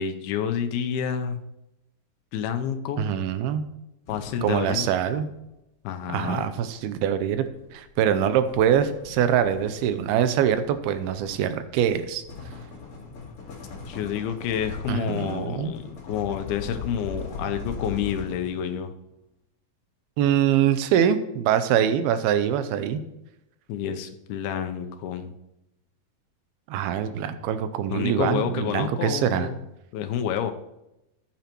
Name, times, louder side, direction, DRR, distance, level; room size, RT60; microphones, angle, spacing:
voice 1, 0.0-1.4 2.3-3.1 4.1-4.9 5.8-6.4 13.9-18.9 23.7-25.3 27.9-29.5 29.9-30.5, left 8 dB, 90° left, 7 dB, 2.7 m, -29 dB
voice 2, 3.0-3.7 4.4-5.3 6.1-7.5 7.7-12.2 14.9-15.7 20.2-23.0 26.7-29.5, right 9 dB, 90° right, 11 dB, 2.6 m, -24 dB
sound 1, 4.1-5.4 6.6-18.8, left 4 dB, 45° left, 2.6 m, -40 dB
14.0 x 9.1 x 3.0 m, 0.91 s
omnidirectional pair, 4.3 m